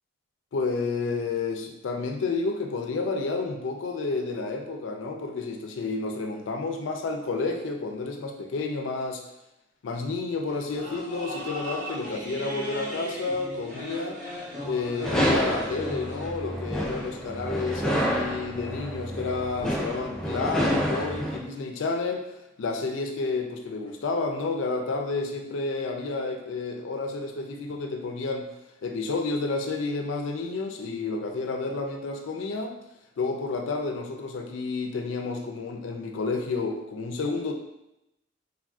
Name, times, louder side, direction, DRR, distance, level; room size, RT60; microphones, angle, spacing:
voice 1, 0.5-9.2 9.8-14.2 14.6-22.2 22.6-28.5 28.8-32.7 33.2-37.5, left 3 dB, 85° left, 4 dB, 0.4 m, -30 dB
sound 1, 10.5-16.3, equal, 45° right, 0.8 m, -37 dB
sound 2, 15.0-21.4, equal, 5° left, 0.4 m, -28 dB
3.4 x 2.5 x 2.3 m, 0.87 s
head